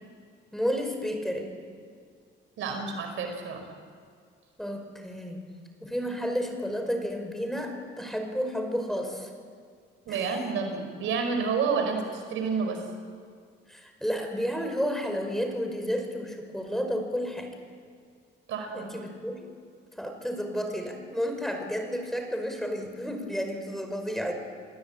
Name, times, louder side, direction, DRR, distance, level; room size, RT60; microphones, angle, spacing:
voice 1, 0.5-1.5 4.6-5.4 5.8-9.3 10.1-10.3 13.7-17.5 18.7-19.4 20.0-24.3, equal, ahead, 4 dB, 5.1 m, -31 dB
voice 2, 2.6-3.7 10.1-12.8 18.5-18.9, right 5 dB, 80° right, 5 dB, 4.8 m, -29 dB
29.0 x 18.0 x 8.7 m, 2.1 s
cardioid pair, 90°, 20 cm